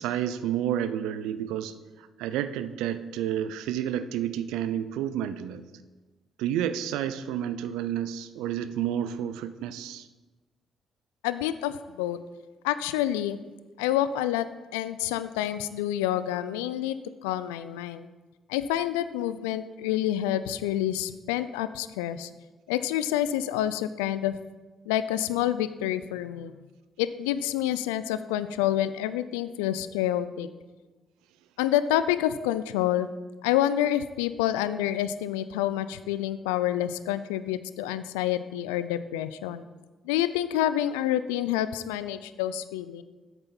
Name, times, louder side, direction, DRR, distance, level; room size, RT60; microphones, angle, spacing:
voice 1, 0.0-1.7 2.2-5.6 6.4-10.1, right 10 dB, 80° right, 13 dB, 0.4 m, -30 dB
voice 2, 11.2-12.2 12.6-13.4 13.8-14.5 14.7-16.9 17.2-18.1 18.5-22.3 22.7-24.4 24.9-26.5 27.0-30.5 31.6-33.1 33.4-39.6 40.1-43.0, left 12 dB, 85° left, 14 dB, 0.3 m, -28 dB
8.1 x 6.8 x 4.4 m, 1.2 s
hypercardioid pair, 50°, 0 cm